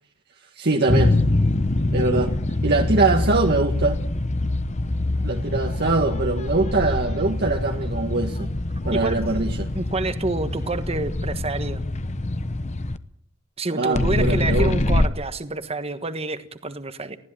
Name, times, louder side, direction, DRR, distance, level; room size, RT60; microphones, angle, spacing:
voice 1, 0.6-1.1 1.9-2.3 2.6-4.0 5.2-8.5 8.8-9.7 13.7-14.8, right 3 dB, 50° right, 2 dB, 1.7 m, -22 dB
sound 1, 0.9-13.0 14.0-15.1, left 2 dB, 35° left, 1.0 m, -24 dB
voice 2, 9.7-11.9 13.6-17.2, right 2 dB, 30° right, 10 dB, 1.4 m, -28 dB
20.0 x 15.0 x 9.0 m, 0.68 s
head